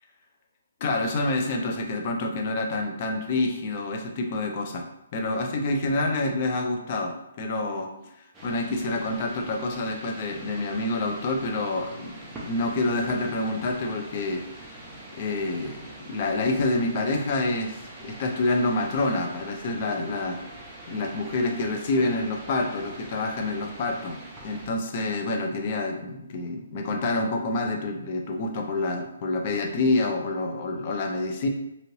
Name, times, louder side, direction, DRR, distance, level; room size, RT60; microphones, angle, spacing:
voice 1, 0.8-4.8 5.1-8.1 8.4-14.7 15.1-20.4 20.9-31.5, left 2 dB, 35° left, 3 dB, 0.5 m, -27 dB
sound 1, 8.3-24.7, right 1 dB, 10° right, 0.6 m, -44 dB
2.7 x 2.7 x 3.0 m, 0.84 s
hypercardioid pair, 160°, 0 cm